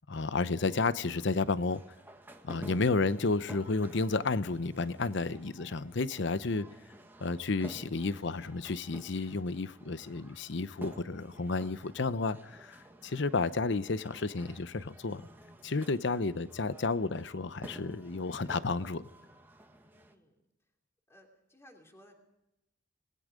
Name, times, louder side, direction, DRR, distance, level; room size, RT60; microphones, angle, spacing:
voice 1, 0.1-1.8 2.4-6.7 7.2-15.2 15.6-19.1, left 3 dB, 60° left, 0.7 m, -31 dB
sound 1, 0.6-20.1, right 1 dB, 10° right, 1.7 m, -52 dB
voice 2, 19.8-20.4 21.1-22.1, equal, 15° left, 2.9 m, -59 dB
27.0 x 19.5 x 5.2 m
head